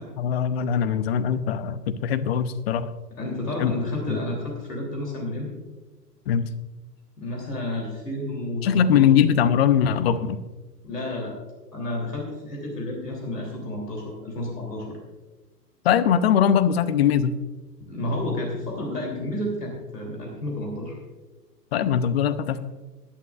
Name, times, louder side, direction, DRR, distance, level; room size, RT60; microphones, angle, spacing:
voice 1, 0.2-2.9 3.6-3.8 4.1-4.2 6.3-6.5 8.6-10.4 15.8-17.3 21.7-22.6, left 8 dB, 40° left, 13 dB, 0.7 m, -21 dB
voice 2, 3.1-5.6 7.2-9.1 10.8-11.3 11.7-15.0 17.9-21.0, left 1 dB, 70° left, -1 dB, 3.3 m, -31 dB
18.5 x 11.5 x 2.5 m, 1.2 s
figure-of-eight pair, 105°, 49 cm